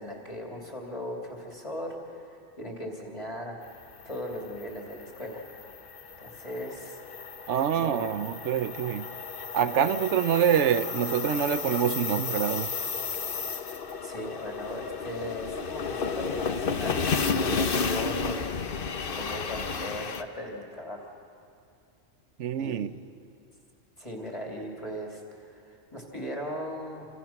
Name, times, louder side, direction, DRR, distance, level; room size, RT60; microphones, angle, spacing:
voice 1, 0.0-3.6 4.0-5.4 6.2-7.0 7.4-7.5 7.8-8.1 9.6-10.0 14.0-18.5 19.0-21.1 22.6-22.9 24.0-27.1, equal, 25° left, -1 dB, 2.9 m, -38 dB
sound 1, 3.7-20.2, left 5 dB, 45° left, 1.1 m, -32 dB
voice 2, 7.5-9.1 9.5-12.7 22.4-22.9, right 9 dB, 65° right, 13 dB, 1.0 m, -26 dB
29.0 x 26.5 x 5.9 m, 2.4 s
omnidirectional pair, 1.3 m